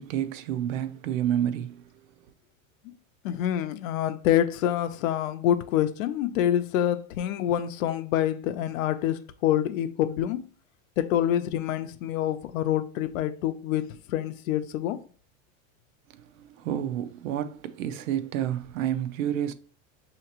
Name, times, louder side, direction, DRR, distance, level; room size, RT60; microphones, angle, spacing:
voice 1, 0.0-2.1 16.1-19.5, right 10 dB, 75° right, 0.6 m, -30 dB
voice 2, 3.2-10.5 11.0-15.0, left 11 dB, 80° left, 0.6 m, -26 dB
5.8 x 2.9 x 2.9 m
supercardioid pair, 155°, 40 cm